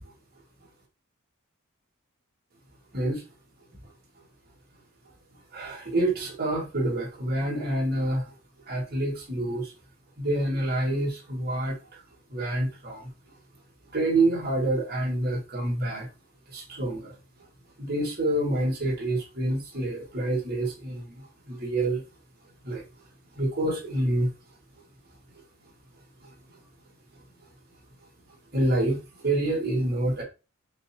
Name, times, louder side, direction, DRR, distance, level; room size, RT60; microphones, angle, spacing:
voice 1, 5.5-8.3 8.7-9.7 10.2-12.0 12.3-13.1 13.9-16.1 16.5-17.1 17.8-22.0 22.6-22.8 23.4-24.3 26.2-26.3 28.5-30.2, right 1 dB, 45° right, -3 dB, 1.8 m, -27 dB
5.1 x 2.9 x 2.8 m, 0.29 s
head